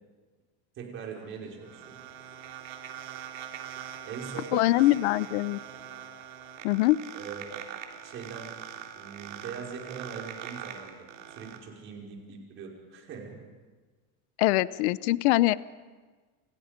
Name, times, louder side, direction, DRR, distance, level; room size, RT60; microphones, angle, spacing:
voice 1, 0.8-2.0 4.0-4.8 5.4-5.5 7.1-7.6 8.0-8.5 8.9-13.5, right 6 dB, 35° right, -1 dB, 5.4 m, -41 dB
sound 1, 1.1-11.6, right 10 dB, 75° right, 3.7 m, -43 dB
voice 2, 4.5-5.6 6.6-7.0 14.4-15.6, left 18 dB, 65° left, 17 dB, 0.8 m, -23 dB
28.5 x 28.5 x 5.3 m, 1.3 s
supercardioid pair, 165°, 37 cm